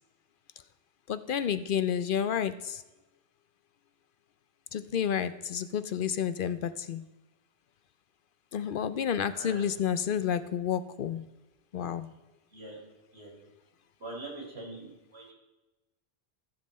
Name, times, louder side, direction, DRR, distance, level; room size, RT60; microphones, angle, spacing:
voice 1, 1.1-2.8 4.7-7.0 8.5-11.3 11.7-12.1, left 8 dB, 60° left, 13 dB, 0.7 m, -30 dB
voice 2, 9.3-9.7 12.5-12.8 13.1-13.3 14.0-15.3, right 2 dB, 85° right, -4 dB, 4.2 m, -43 dB
14.5 x 7.4 x 4.2 m, 1.1 s
omnidirectional pair, 1.1 m